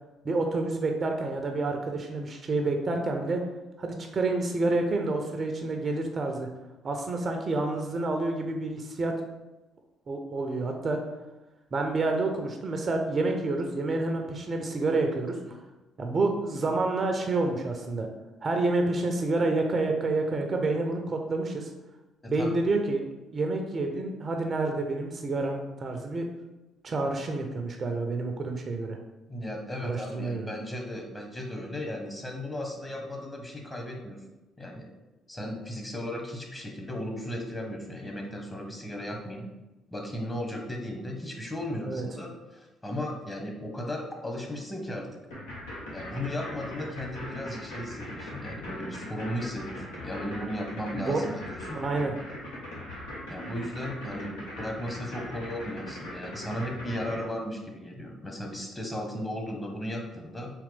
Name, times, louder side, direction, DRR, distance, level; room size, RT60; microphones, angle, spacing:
voice 1, 0.2-3.4 3.8-6.5 6.8-9.1 10.1-11.0 11.7-15.4 16.0-18.1 18.4-21.7 22.3-23.0 23.3-26.2 26.8-29.0 29.8-30.5 41.8-42.0 50.9-51.2 51.7-52.1, right 2 dB, 40° right, 4 dB, 0.5 m, -28 dB
voice 2, 22.2-22.6 29.3-34.2 34.6-34.9 35.3-39.5 39.9-45.1 45.9-51.8 53.3-60.5, left 1 dB, 20° left, 1 dB, 1.1 m, -36 dB
sound 1, 45.3-57.2, left 1 dB, 80° left, 1.1 m, -40 dB
3.8 x 3.0 x 3.3 m, 1.1 s
hypercardioid pair, 50°, 0 cm